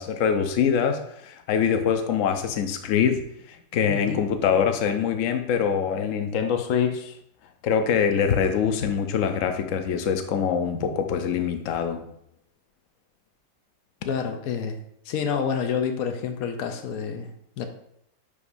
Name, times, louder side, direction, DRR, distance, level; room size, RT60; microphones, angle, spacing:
voice 1, 0.0-3.2 3.5-7.1 7.6-12.0, left 7 dB, 70° left, 6 dB, 1.0 m, -24 dB
voice 2, 3.9-4.2 14.1-14.8 15.1-17.7, left 6 dB, 85° left, 6 dB, 1.1 m, -28 dB
9.8 x 5.1 x 2.6 m, 0.74 s
omnidirectional pair, 1.5 m